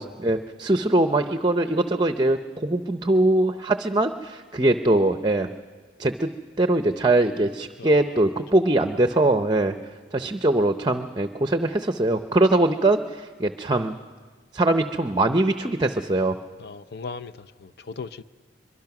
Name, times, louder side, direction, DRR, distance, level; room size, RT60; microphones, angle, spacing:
voice 1, 0.0-5.5 6.0-6.3 6.6-9.7 10.1-14.0 14.5-16.4, right 2 dB, 25° right, 0.6 m, -22 dB
voice 2, 7.8-8.2 16.6-18.2, left 4 dB, 60° left, 0.6 m, -38 dB
24.0 x 23.0 x 6.0 m
head